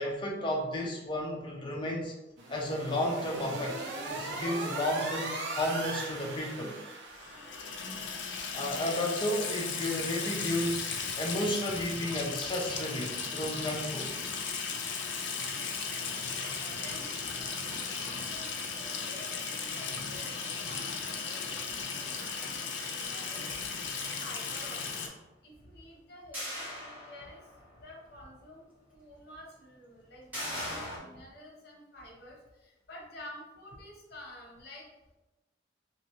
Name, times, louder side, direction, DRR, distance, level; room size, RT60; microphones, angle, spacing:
voice 1, 0.0-2.1 2.5-3.8 4.1-6.8 8.5-10.8 11.2-14.1, left 1 dB, 25° left, -1 dB, 0.6 m, -32 dB
sound 1, 2.4-7.9, right 2 dB, 75° right, 0.6 m, -39 dB
Water tap faucet / Sink (filling or washing), 7.2-25.1, left 5 dB, 80° left, 0.5 m, -36 dB
voice 2, 16.4-23.5 24.0-25.1 25.4-27.4 27.8-28.7 28.9-32.4 32.6-34.9, left 1 dB, 60° left, -3 dB, 0.9 m, -50 dB
sound 2, 26.3-27.6 28.0-28.1 30.3-31.0, equal, 10° right, 1.2 m, -38 dB
3.1 x 3.0 x 2.9 m, 1.0 s
head